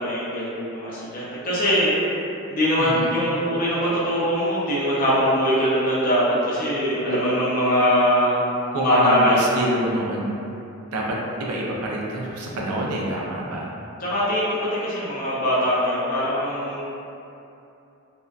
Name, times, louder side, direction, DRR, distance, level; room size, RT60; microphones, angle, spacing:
voice 1, 0.0-1.9 2.5-8.4 8.8-9.5 14.0-16.8, equal, 40° left, -9 dB, 0.5 m, -22 dB
voice 2, 2.8-3.1 8.7-10.4 10.9-13.7, right 1 dB, 85° right, -3 dB, 0.4 m, -27 dB
2.6 x 2.2 x 2.2 m, 2.8 s
head